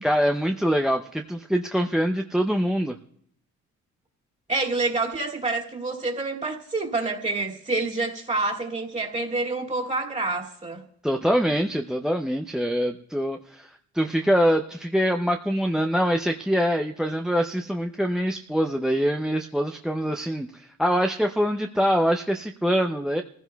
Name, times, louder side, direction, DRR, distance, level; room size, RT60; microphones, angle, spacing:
voice 1, 0.0-3.0 11.0-23.2, equal, ahead, 0.5 m, -24 dB
voice 2, 4.5-10.8, right 3 dB, 25° right, 2.4 m, -27 dB
25.0 x 15.5 x 2.3 m
cardioid pair, 90°, 30 cm